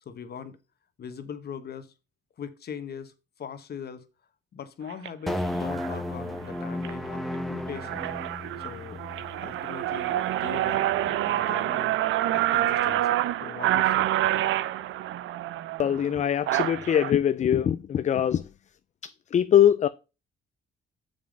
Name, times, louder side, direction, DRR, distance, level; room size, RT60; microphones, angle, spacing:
voice 1, 0.0-0.6 1.0-1.9 2.4-3.1 3.4-4.1 4.5-8.0 8.6-11.9 12.3-14.1, left 7 dB, 55° left, 1.2 m, -41 dB
sound 1, 4.9-5.1 5.7-6.0 6.5-6.9 7.3-7.4 7.7-17.1, right 13 dB, 80° right, 0.5 m, -27 dB
sound 2, 5.3-11.7, left 1 dB, ahead, 1.1 m, -35 dB
voice 2, 15.8-18.4 19.3-19.9, left 9 dB, 35° left, 0.4 m, -22 dB
7.1 x 5.2 x 5.1 m
cardioid pair, 90°, 20 cm